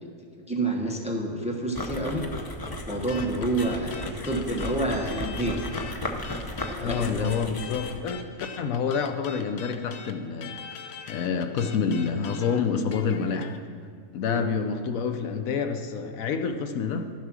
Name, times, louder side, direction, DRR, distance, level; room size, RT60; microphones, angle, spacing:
voice 1, 0.5-2.3 2.8-5.6 6.7-7.3 14.3-14.4, right 1 dB, 5° right, 1 dB, 0.9 m, -28 dB
sound 1, 1.7-8.1, left 1 dB, 25° left, 0.4 m, -35 dB
sound 2, 3.1-5.9 6.2-13.6, left 6 dB, 55° left, 0.8 m, -42 dB
voice 2, 6.8-8.3 8.6-10.6 11.1-13.5 14.1-17.1, left 6 dB, 75° left, 7 dB, 1.1 m, -28 dB
12.0 x 7.3 x 6.1 m, 2.2 s
omnidirectional pair, 1.5 m